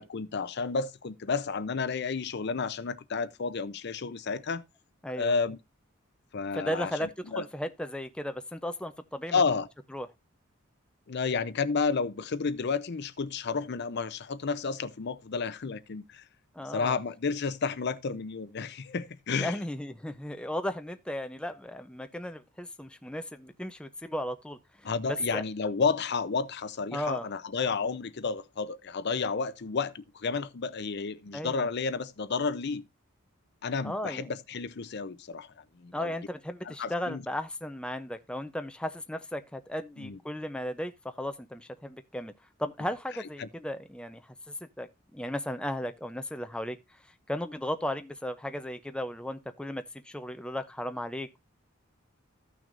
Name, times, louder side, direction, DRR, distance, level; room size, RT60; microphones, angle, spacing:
voice 1, 0.0-4.6 5.2-5.6 6.3-7.4 9.3-9.7 11.1-16.2 16.6-19.6 24.8-32.8 33.6-35.5 35.8-36.1 36.7-37.2 40.0-40.2 43.4-43.5, left 5 dB, 55° left, 0.6 m, -31 dB
voice 2, 5.0-5.3 6.5-9.4 9.9-10.1 16.5-17.0 19.3-25.4 26.9-27.3 31.3-31.7 33.8-34.3 35.9-42.3 42.6-46.8 47.3-51.4, left 1 dB, 5° left, 0.5 m, -35 dB
15.0 x 6.1 x 2.5 m
head